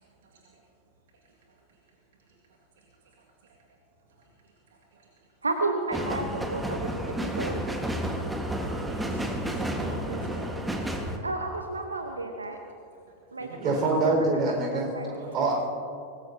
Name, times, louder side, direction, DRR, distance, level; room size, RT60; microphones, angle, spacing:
voice 1, 5.4-7.6 11.2-12.6 13.3-13.5 14.7-15.2, right 2 dB, 80° right, 4 dB, 1.1 m, -32 dB
sound 1, 5.9-11.2, right 1 dB, 5° right, 1.6 m, -31 dB
voice 2, 8.8-10.5 13.4-14.0 15.1-15.5, right 3 dB, 60° right, -2 dB, 2.1 m, -42 dB
voice 3, 13.6-14.9 15.3-15.5, right 3 dB, 30° right, 0 dB, 5.2 m, -24 dB
24.5 x 19.5 x 2.9 m, 2.4 s
figure-of-eight pair, 90°, 0 cm